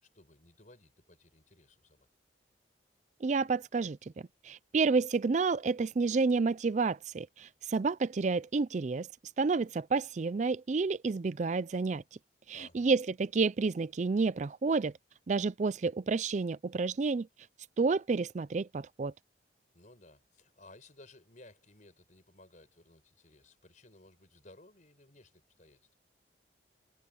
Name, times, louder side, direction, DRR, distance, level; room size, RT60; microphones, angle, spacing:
voice 1, 0.0-2.1 12.5-12.9 19.7-25.9, left 2 dB, 40° left, 5.3 m, -58 dB
voice 2, 3.2-4.0 4.4-9.1 9.4-12.0 12.5-14.9 15.3-17.3 17.8-19.1, right 4 dB, 40° right, 0.4 m, -30 dB
head